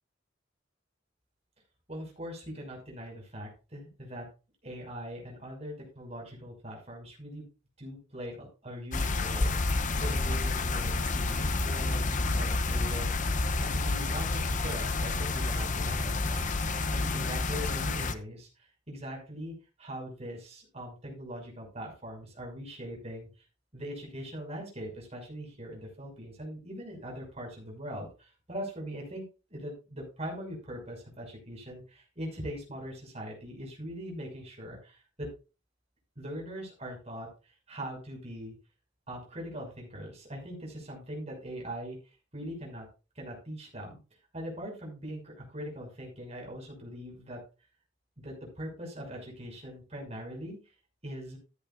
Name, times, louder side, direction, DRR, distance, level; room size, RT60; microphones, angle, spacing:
voice 1, 1.9-4.3 4.6-7.4 7.8-9.5 10.0-13.3 13.6-16.5 16.9-23.3 23.7-29.2 29.5-35.3 36.2-37.3 37.7-38.5 39.1-42.0 42.3-42.9 43.1-44.0 44.3-47.4 48.2-50.6 51.0-51.4, equal, 35° right, 0 dB, 6.2 m, -41 dB
sound 1, 8.9-18.1, left 3 dB, 40° left, 0.8 m, -29 dB
14.5 x 10.0 x 2.6 m, 0.31 s
head